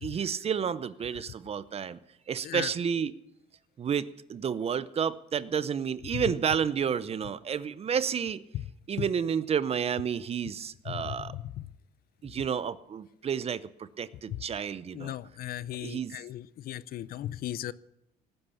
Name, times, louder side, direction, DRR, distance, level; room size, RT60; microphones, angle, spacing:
voice 1, 0.0-2.0 2.3-3.1 3.8-8.4 8.9-11.3 12.2-15.1 15.8-16.1, right 7 dB, 35° right, 16 dB, 0.7 m, -31 dB
voice 2, 10.9-11.5 14.3-14.4 14.9-17.7, left 13 dB, 65° left, 18 dB, 0.6 m, -36 dB
18.0 x 10.0 x 7.0 m, 0.85 s
cardioid pair, 110°, 17 cm